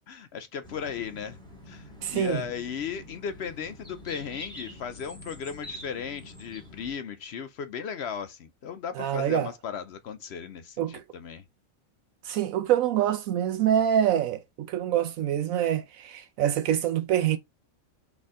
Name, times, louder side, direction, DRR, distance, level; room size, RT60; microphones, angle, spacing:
voice 1, 0.1-1.4 1.7-11.4, left 7 dB, 65° left, 0.7 m, -36 dB
sound 1, 0.6-6.9, left 1 dB, 5° left, 1.5 m, -45 dB
voice 2, 2.0-2.4 9.0-9.5 10.8-11.0 12.2-17.4, right 10 dB, 75° right, 1.0 m, -25 dB
4.2 x 3.4 x 3.6 m
omnidirectional pair, 1.4 m